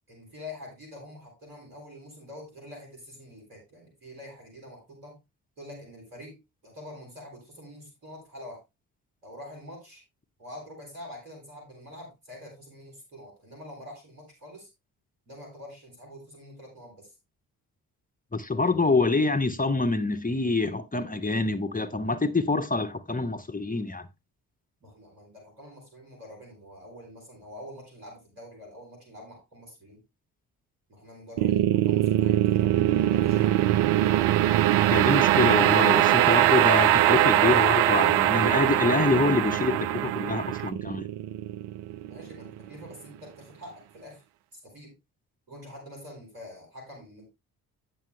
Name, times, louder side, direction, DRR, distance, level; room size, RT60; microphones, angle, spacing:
voice 1, 0.1-5.2 5.6-6.4 6.6-8.6 9.2-10.0 10.4-14.7 15.3-17.1 24.8-30.0 30.9-32.7 33.1-33.7 42.0-44.2 44.5-44.9 45.5-47.2, left 1 dB, 85° right, 3.8 m, -46 dB
voice 2, 18.3-24.1 34.9-41.1, left 3 dB, 20° left, 1.2 m, -26 dB
sound 1, 31.4-42.6, right 13 dB, 60° right, 0.6 m, -22 dB
9.0 x 7.1 x 3.3 m
hypercardioid pair, 40°, 45 cm